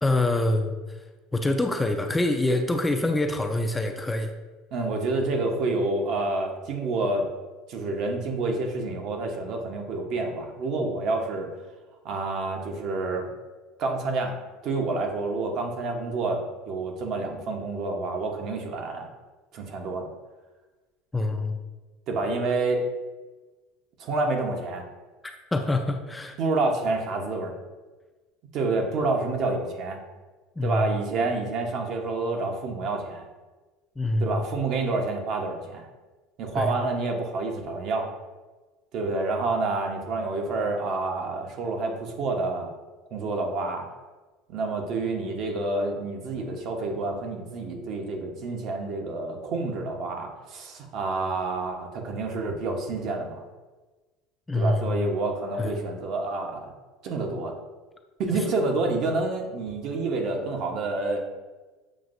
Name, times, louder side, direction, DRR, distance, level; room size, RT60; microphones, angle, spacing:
voice 1, 0.0-0.8 1.3-4.3 21.1-21.6 25.5-26.4 30.6-31.0 34.0-34.4 36.6-36.7 54.5-55.1 55.6-55.7, left 2 dB, 10° left, 4 dB, 0.4 m, -25 dB
voice 2, 4.7-7.3 7.7-11.5 12.0-13.3 13.8-14.3 14.6-19.1 19.5-20.1 22.1-22.8 24.0-24.8 26.4-27.5 28.5-30.0 30.6-33.3 34.2-35.9 36.4-38.1 38.9-42.7 43.1-43.8 44.5-53.4 54.5-56.7 57.0-57.5 58.2-61.2, right 3 dB, 55° right, 2 dB, 0.9 m, -28 dB
7.2 x 2.6 x 2.5 m, 1.2 s
supercardioid pair, 105°, 0 cm